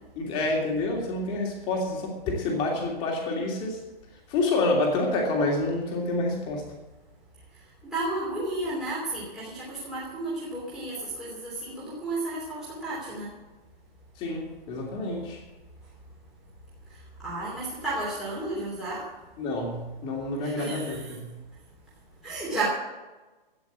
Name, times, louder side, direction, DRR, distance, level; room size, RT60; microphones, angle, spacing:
voice 1, 0.2-3.8 4.3-6.6 14.2-15.4 19.4-21.3, left 2 dB, 15° left, 0 dB, 2.8 m, -28 dB
voice 2, 7.8-13.3 16.9-19.1 20.4-21.1 22.2-22.7, right 2 dB, ahead, -9 dB, 3.1 m, -33 dB
13.5 x 9.7 x 8.1 m, 1.1 s
hypercardioid pair, 165°, 29 cm